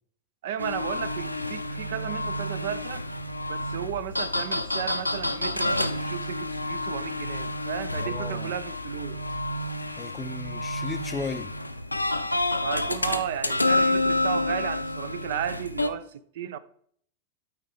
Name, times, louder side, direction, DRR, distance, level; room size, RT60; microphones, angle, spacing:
voice 1, 0.4-3.1 3.5-9.2 12.6-16.6, right 10 dB, 55° right, 0.4 m, -34 dB
sound 1, 0.6-15.9, left 2 dB, 85° left, 0.4 m, -29 dB
voice 2, 8.0-8.5 10.0-11.5, left 4 dB, 15° left, 0.5 m, -35 dB
12.0 x 4.5 x 3.6 m
figure-of-eight pair, 90°, 0 cm